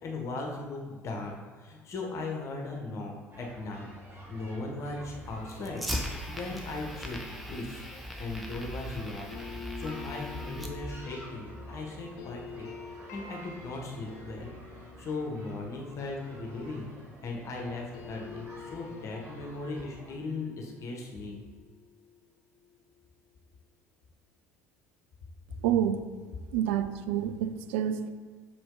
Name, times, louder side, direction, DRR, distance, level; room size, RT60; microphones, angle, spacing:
voice 1, 0.0-7.8 8.2-12.7 13.1-16.9 17.2-21.4, left 3 dB, 40° left, 0 dB, 1.2 m, -38 dB
sound 1, 3.3-20.1, right 1 dB, 30° right, 1.9 m, -50 dB
Fire, 5.0-11.0, equal, ahead, 1.1 m, -39 dB
sound 2, 9.3-17.4 17.7-22.6, left 5 dB, 60° left, 0.8 m, -47 dB
voice 2, 25.6-26.1 26.5-28.1, right 9 dB, 65° right, 9 dB, 0.5 m, -28 dB
6.8 x 4.9 x 3.8 m, 1.5 s
figure-of-eight pair, 55°, 7 cm